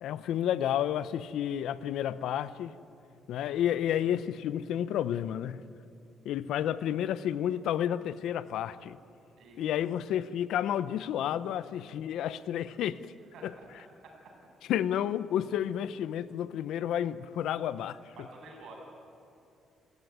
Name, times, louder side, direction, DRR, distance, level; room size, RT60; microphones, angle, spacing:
voice 1, 0.0-2.7 3.3-5.6 6.2-9.0 9.6-13.1 13.4-13.5 14.7-18.0, left 10 dB, 80° left, 0.8 m, -31 dB
voice 2, 9.4-9.9 13.3-13.7 14.0-14.1 18.2-18.7, right 3 dB, 75° right, 7.5 m, -50 dB
29.0 x 15.5 x 9.4 m
cardioid pair, 90°, 0 cm